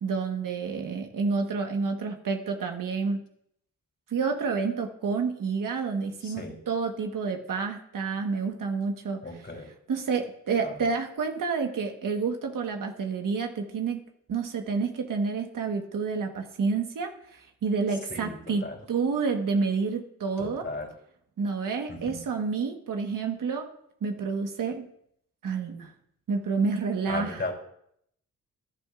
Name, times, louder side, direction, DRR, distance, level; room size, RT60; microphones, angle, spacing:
voice 1, 0.0-3.2 4.1-9.2 9.9-14.0 14.3-20.7 21.4-23.7 24.0-24.9 25.4-25.9 26.3-27.5, right 5 dB, 70° right, 4 dB, 1.4 m, -29 dB
voice 2, 6.2-6.6 9.2-9.7 10.6-10.8 18.1-18.8 20.4-20.9 21.9-22.2 27.1-27.5, left 2 dB, 35° left, -1 dB, 3.6 m, -36 dB
14.0 x 11.5 x 2.5 m, 0.71 s
cardioid pair, 60°, 33 cm